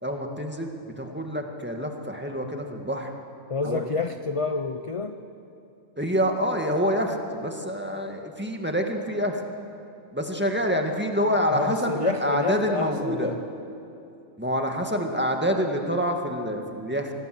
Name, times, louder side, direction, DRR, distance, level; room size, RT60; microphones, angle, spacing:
voice 1, 0.0-3.1 3.6-3.9 6.0-9.4 10.1-13.4 14.4-17.1, equal, 10° right, 3 dB, 1.9 m, -27 dB
voice 2, 3.5-5.2 11.5-13.4, left 4 dB, 35° left, 8 dB, 0.5 m, -29 dB
26.0 x 19.0 x 7.8 m, 2.8 s
omnidirectional pair, 1.4 m